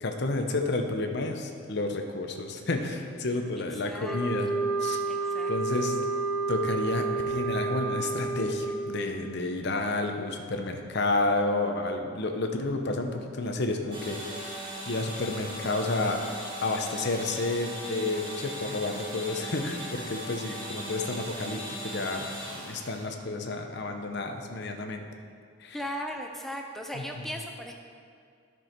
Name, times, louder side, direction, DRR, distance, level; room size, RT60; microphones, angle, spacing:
voice 1, 0.0-4.5 4.8-5.0 5.5-6.0 6.5-16.2 16.6-25.1 25.6-25.8 26.9-27.3, left 2 dB, 55° left, 4 dB, 0.8 m, -31 dB
voice 2, 3.8-4.2 4.4-4.5 5.1-5.5 25.7-27.7, equal, ahead, 2 dB, 0.5 m, -37 dB
sound 1, 4.0-8.9, right 3 dB, 70° right, 1.0 m, -30 dB
sound 2, 13.9-23.1, equal, 25° right, 1.6 m, -39 dB
11.0 x 6.2 x 4.5 m, 2.2 s
head